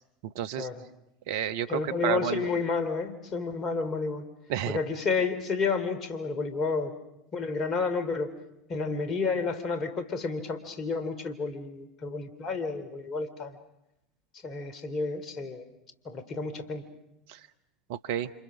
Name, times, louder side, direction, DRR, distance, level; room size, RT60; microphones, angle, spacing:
voice 1, 0.2-0.7 1.3-2.5 4.5-4.8 17.3-17.4 17.9-18.3, right 10 dB, 60° right, 13 dB, 1.2 m, -31 dB
voice 2, 1.7-4.3 4.7-7.0 7.3-8.3 8.7-13.6 14.4-15.6 16.1-16.8, left 4 dB, 35° left, 10 dB, 3.4 m, -31 dB
29.5 x 27.0 x 6.4 m, 0.88 s
figure-of-eight pair, 75°, 0 cm